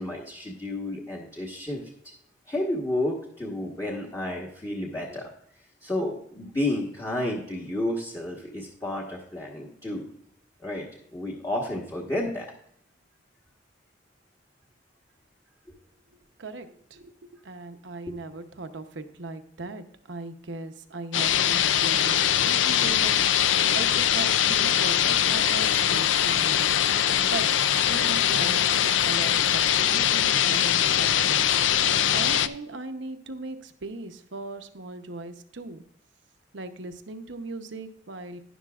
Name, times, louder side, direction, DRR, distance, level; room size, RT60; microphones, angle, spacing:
voice 1, 0.0-1.9 2.5-5.3 5.8-10.1 10.6-12.5, left 1 dB, 20° left, -3 dB, 1.3 m, -31 dB
voice 2, 16.4-27.5 27.8-35.8 36.5-38.4, right 2 dB, 80° right, 8 dB, 0.9 m, -39 dB
sound 1, 21.1-32.5, left 10 dB, 90° left, 0.5 m, -22 dB
11.0 x 11.0 x 2.4 m, 0.66 s
head